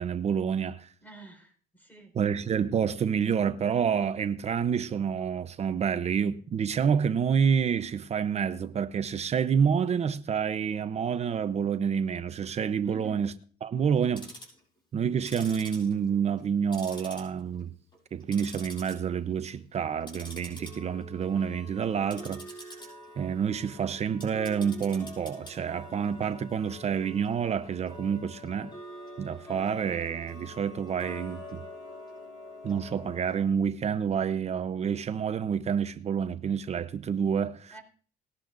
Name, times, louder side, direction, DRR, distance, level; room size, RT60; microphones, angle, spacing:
voice 1, 0.0-0.9 2.2-13.3 13.6-14.3 14.9-17.7 18.1-22.8 23.2-28.7 29.2-31.6 32.6-37.7, right 7 dB, 40° right, 0.8 m, -28 dB
voice 2, 1.0-2.2 12.8-13.2 37.7-37.8, right 3 dB, 10° left, 4.4 m, -48 dB
Tick-tock, 14.0-14.6 15.2-16.5 16.7-17.6 17.9-18.9 19.3-19.6 20.0-33.4, left 1 dB, 25° left, 6.6 m, -45 dB
20.0 x 11.5 x 2.6 m
cardioid pair, 110°, 17 cm